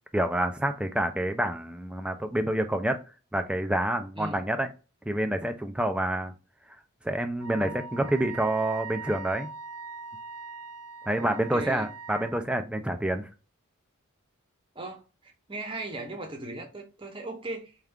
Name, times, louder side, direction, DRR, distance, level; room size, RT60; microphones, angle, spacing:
voice 1, 0.1-3.0 3.3-4.7 5.1-6.3 7.0-9.5 11.1-13.3, right 1 dB, 5° right, 0.3 m, -28 dB
Wind instrument woodwind instrument, 7.4-12.3, right 5 dB, 90° right, 0.4 m, -41 dB
voice 2, 11.2-11.9 14.7-17.8, right 2 dB, 25° right, 0.8 m, -38 dB
4.3 x 2.4 x 3.5 m
head